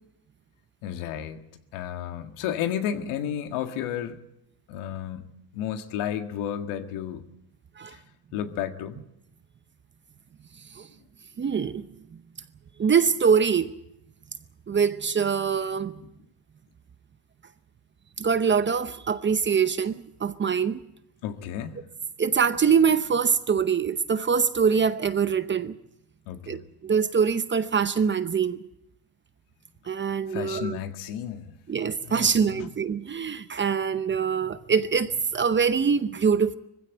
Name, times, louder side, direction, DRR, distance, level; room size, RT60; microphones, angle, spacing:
voice 1, 0.8-4.2 4.7-5.2 5.5-7.2 7.9-8.0 8.3-9.0 21.2-21.9 26.3-26.6 30.3-31.6 32.0-32.7, left 9 dB, 75° left, 1.9 m, -32 dB
voice 2, 11.4-11.8 12.8-13.7 14.7-16.0 18.2-20.8 22.2-25.8 26.5-28.6 29.9-30.8 31.7-36.6, right 6 dB, 25° right, 0.7 m, -24 dB
21.0 x 16.0 x 9.0 m
cardioid pair, 120°, 50 cm